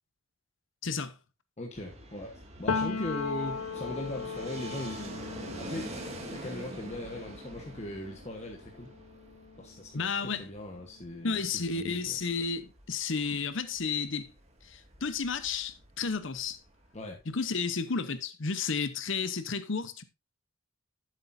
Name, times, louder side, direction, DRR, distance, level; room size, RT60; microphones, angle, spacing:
voice 1, 0.8-1.1 9.9-10.5 11.2-14.3 14.6-16.6 17.3-20.0, left 5 dB, 60° left, 0.8 m, -32 dB
voice 2, 1.6-5.2 5.6-6.0 6.3-8.9 9.6-12.2 16.9-17.2, left 1 dB, 30° left, 1.2 m, -39 dB
Fixed-wing aircraft airplane, 1.7-17.5, right 1 dB, 30° right, 2.0 m, -46 dB
Piano, 2.7-10.3 10.6-12.2, left 5 dB, 85° left, 0.9 m, -38 dB
13.0 x 7.7 x 2.6 m
head